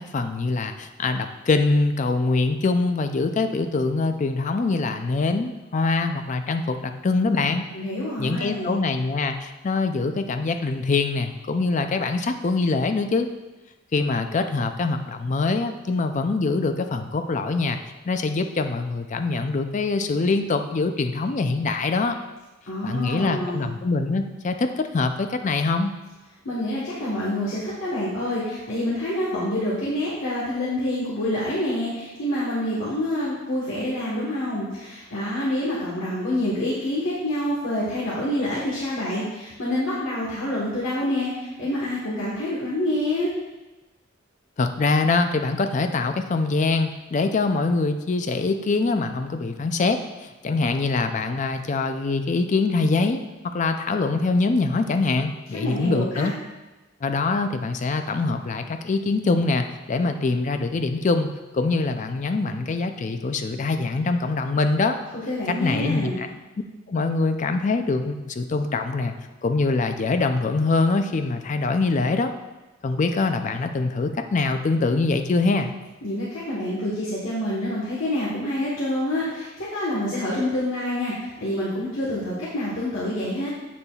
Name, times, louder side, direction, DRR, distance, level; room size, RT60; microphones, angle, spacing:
voice 1, 0.0-7.7 8.2-13.3 13.9-17.8 18.1-22.2 22.8-25.9 44.6-56.3 57.0-61.3 61.5-65.0 65.6-66.3 66.9-69.1 69.4-72.3 72.8-75.7, left 3 dB, 40° left, 7 dB, 0.4 m, -24 dB
voice 2, 7.7-8.8 22.7-23.7 26.4-43.3 55.6-56.3 65.3-66.2 76.0-83.5, left 1 dB, 80° left, -7 dB, 1.3 m, -27 dB
7.4 x 6.7 x 2.4 m, 1.1 s
head